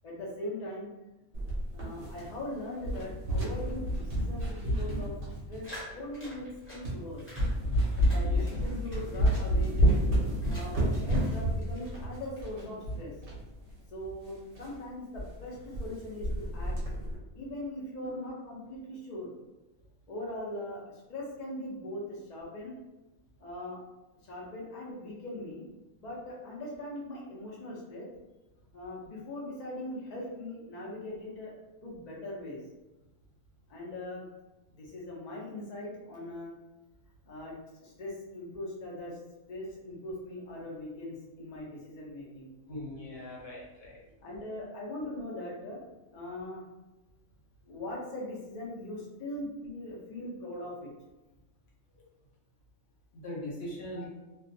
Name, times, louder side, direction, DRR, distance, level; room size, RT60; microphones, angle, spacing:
voice 1, 0.0-0.9 1.7-5.1 5.5-5.6 5.9-7.2 8.0-9.8 10.4-13.1 13.9-16.8 17.3-19.3 20.1-22.8 23.4-23.8 24.2-25.6 25.9-28.1 28.7-31.5 31.8-32.6 33.7-34.3 34.7-36.5 37.3-37.5 37.8-39.2 39.5-42.5 44.2-45.8 46.1-46.6 47.7-50.9 53.9-54.1, left 1 dB, 80° left, -4 dB, 0.3 m, -40 dB
sound 1, 1.3-2.5 2.8-5.8 6.3-6.4 6.8-7.0 7.4-13.4 13.7-13.8 14.0-14.1 14.6-14.7 15.1-15.3 15.5-15.9 16.2-17.2, equal, 55° right, 0.7 m, -29 dB
sound 2, 5.6-6.9 7.2-7.5 7.9-10.0 10.4-11.4 11.6-12.4, equal, 15° left, 0.6 m, -48 dB
voice 2, 42.7-44.0 53.1-54.1, left 1 dB, 55° left, -4 dB, 0.8 m, -40 dB
2.3 x 2.2 x 2.6 m, 1.0 s
omnidirectional pair, 1.5 m